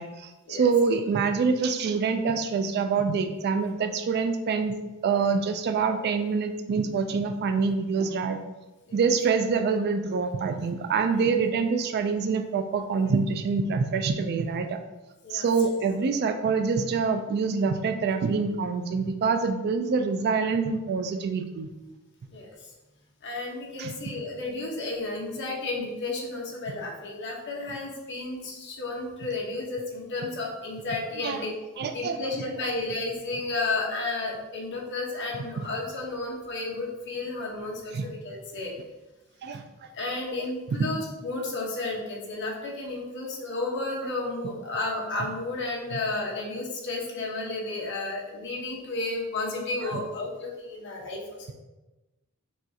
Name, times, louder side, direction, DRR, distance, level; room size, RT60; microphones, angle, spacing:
voice 1, 0.0-4.8 5.0-8.4 8.9-14.8 15.3-21.7 23.8-24.0 31.2-31.4 31.8-32.2 37.9-38.1 39.4-39.6 40.8-40.9 49.8-50.0, right 5 dB, 50° right, 7 dB, 0.3 m, -26 dB
voice 2, 22.3-22.7 23.2-31.5 31.9-38.7 39.9-51.2, left 2 dB, 55° left, -1 dB, 0.9 m, -32 dB
6.2 x 2.4 x 2.7 m, 1.1 s
head